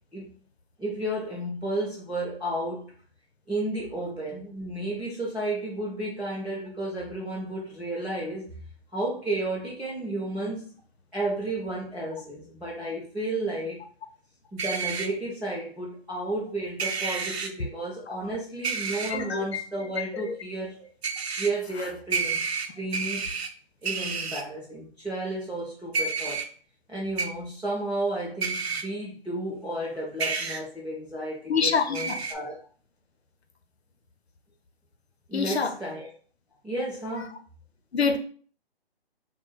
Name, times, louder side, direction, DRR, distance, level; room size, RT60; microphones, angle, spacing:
voice 1, 0.8-2.9 3.5-8.5 8.9-10.6 11.1-13.8 14.5-20.9 21.4-23.3 23.8-26.4 26.9-32.6 35.3-36.1 36.6-37.4, right 1 dB, 5° right, -13 dB, 0.5 m, -32 dB
sound 1, 14.6-15.1 16.8-17.5 18.6-19.1 21.0-21.5 22.1-23.5 23.8-24.4 25.9-26.4 27.2-27.3 28.4-28.8 30.2-30.6 31.9-32.3, right 5 dB, 85° right, 0.7 m, -29 dB
voice 2, 19.1-19.6 20.1-20.3 31.5-32.2 35.3-35.7 37.9-38.2, left 5 dB, 85° left, 8 dB, 0.7 m, -26 dB
3.6 x 2.2 x 4.3 m, 0.43 s
hypercardioid pair, 160°, 31 cm